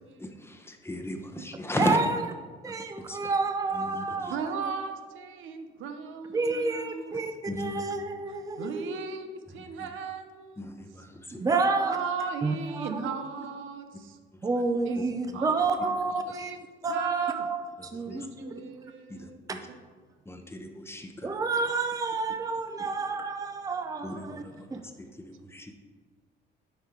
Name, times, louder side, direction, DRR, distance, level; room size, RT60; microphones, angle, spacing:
voice 1, 0.2-2.0 2.7-2.8 3.1-3.3 3.7-4.3 7.5-7.8 9.6-9.7 10.6-11.4 17.8-18.2 19.1-19.6 20.3-21.4 24.0-24.7 25.0-25.7, left 1 dB, 10° left, 4 dB, 0.8 m, -36 dB
voice 2, 1.8-2.3 2.6-4.4 6.3-8.9 11.4-12.0 12.4-13.0 14.4-16.6 16.8-17.6 17.9-18.8 19.5-19.6 21.2-24.4 24.7-24.8, right 3 dB, 15° right, 7 dB, 0.5 m, -29 dB
voice 3, 4.3-7.3 8.6-10.7 11.4-14.2 14.9-15.0 15.3-16.6 16.9-17.5 18.1-19.8, right 5 dB, 80° right, 7 dB, 0.7 m, -37 dB
8.2 x 5.0 x 4.6 m, 1.5 s
cardioid pair, 90°, 20 cm